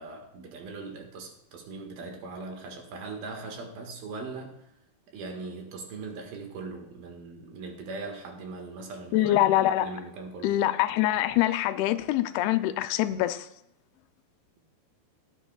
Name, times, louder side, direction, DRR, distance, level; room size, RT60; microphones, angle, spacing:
voice 1, 0.0-4.6 5.1-9.3 9.8-10.6, right 3 dB, 70° right, 3 dB, 3.2 m, -40 dB
voice 2, 9.1-9.9 10.4-13.5, left 14 dB, 85° left, 11 dB, 2.6 m, -24 dB
17.5 x 9.4 x 2.3 m, 0.83 s
omnidirectional pair, 4.5 m